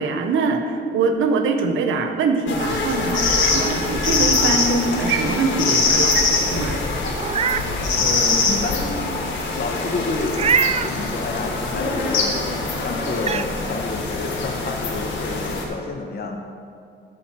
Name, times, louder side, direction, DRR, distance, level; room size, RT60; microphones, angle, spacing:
voice 1, 0.0-6.8, right 4 dB, 80° right, 6 dB, 0.9 m, -23 dB
sound 1, 2.5-15.6, left 3 dB, 70° left, 1.6 m, -23 dB
Meow, 7.1-7.7 8.2-8.3 10.3-10.9 12.5-12.6 13.2-13.5, right 7 dB, 35° right, 0.4 m, -22 dB
voice 2, 8.0-9.0 9.5-10.5 10.8-12.4 12.8-16.4, left 3 dB, 50° left, 3 dB, 1.5 m, -29 dB
12.0 x 4.9 x 6.0 m, 2.3 s
cardioid pair, 90°, 20 cm